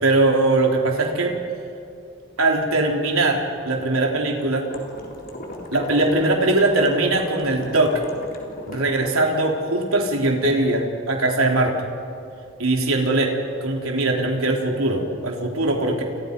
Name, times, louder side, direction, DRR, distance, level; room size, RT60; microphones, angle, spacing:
voice 1, 0.0-1.3 2.4-4.7 5.7-8.0 8.7-11.7 12.6-13.3 13.6-16.0, right 2 dB, 80° right, 1 dB, 3.6 m, -21 dB
sound 1, 4.7-9.1, left 1 dB, 45° left, 3.8 m, -36 dB
29.5 x 29.0 x 5.4 m, 2.5 s
head